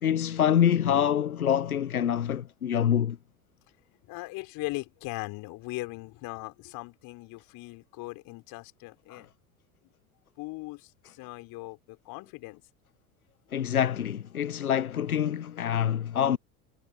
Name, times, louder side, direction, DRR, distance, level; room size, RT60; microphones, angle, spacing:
voice 1, 0.0-3.2 9.1-9.2 13.5-16.4, left 9 dB, 90° left, 0.7 m, -26 dB
voice 2, 4.1-9.3 9.8-9.9 10.4-12.6, left 23 dB, 55° left, 4.3 m, -39 dB
figure-of-eight pair, 70°, 43 cm